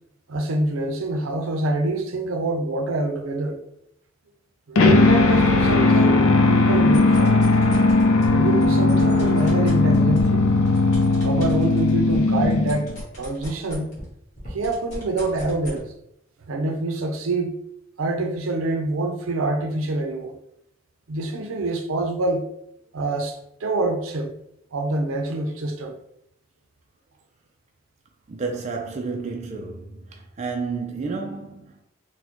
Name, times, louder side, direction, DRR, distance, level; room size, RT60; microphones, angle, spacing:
voice 1, 0.3-3.6 4.7-6.2 6.5-7.4 8.3-10.5 11.2-13.9 14.5-15.9 16.5-17.6 18.0-20.4 21.1-22.4 22.9-24.3 24.7-25.9, right 2 dB, 85° right, 0.5 m, -26 dB
sound 1, 4.8-13.0, left 3 dB, 90° left, 0.4 m, -18 dB
sound 2, 6.8-8.3 8.6-14.1 14.4-15.8, equal, 35° left, 1.4 m, -38 dB
voice 2, 28.3-31.8, right 4 dB, 35° right, 0.3 m, -31 dB
4.2 x 2.1 x 2.9 m
head